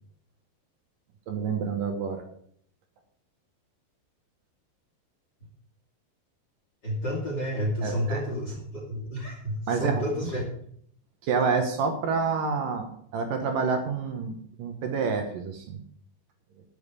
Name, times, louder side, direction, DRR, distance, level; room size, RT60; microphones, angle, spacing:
voice 1, 1.3-2.2 7.8-8.2 9.7-10.0 11.2-12.9 13.1-15.8, right 5 dB, 65° right, 5 dB, 2.6 m, -28 dB
voice 2, 6.8-10.4, equal, 30° left, -1 dB, 2.7 m, -30 dB
11.5 x 7.4 x 8.4 m, 0.64 s
omnidirectional pair, 4.8 m